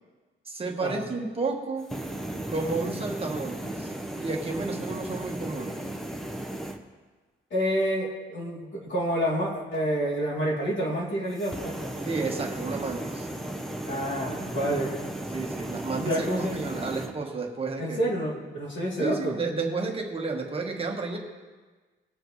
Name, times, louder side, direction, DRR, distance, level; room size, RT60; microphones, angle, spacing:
voice 1, 0.5-1.9 2.5-5.8 12.0-13.3 15.3-18.0 19.0-21.2, right 3 dB, 25° right, 1 dB, 1.3 m, -31 dB
sound 1, 1.8-6.8 11.3-17.1, right 1 dB, ahead, 0.9 m, -35 dB
voice 2, 7.5-11.9 13.8-15.0 16.0-16.5 17.8-19.4, equal, 65° left, -4 dB, 3.0 m, -28 dB
20.5 x 7.8 x 3.2 m, 1.3 s
wide cardioid pair, 155°, 21 cm